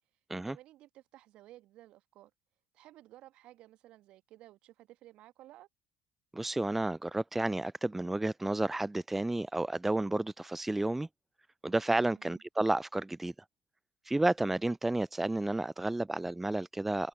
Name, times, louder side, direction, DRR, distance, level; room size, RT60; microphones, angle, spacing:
voice 1, 0.5-2.3 2.7-5.7 12.1-12.4, right 15 dB, 55° right, 1.5 m, -55 dB
voice 2, 6.3-11.1 11.6-13.3 14.1-17.1, right 2 dB, 10° right, 0.4 m, -31 dB
figure-of-eight pair, 55°, 2 cm